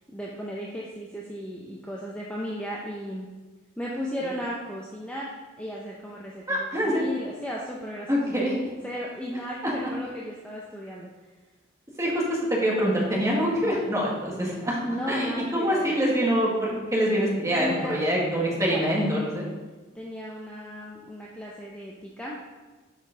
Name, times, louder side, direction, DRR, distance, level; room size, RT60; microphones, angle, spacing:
voice 1, 0.1-3.3 3.8-5.3 5.6-8.4 8.8-11.1 14.8-15.9 17.5-18.0 18.5-19.1 19.9-22.4, equal, 5° left, -4 dB, 0.5 m, -35 dB
voice 2, 6.5-7.1 8.1-8.7 9.6-9.9 12.0-14.8 15.1-19.5, equal, 15° right, -4 dB, 1.3 m, -25 dB
6.4 x 5.1 x 3.7 m, 1.3 s
head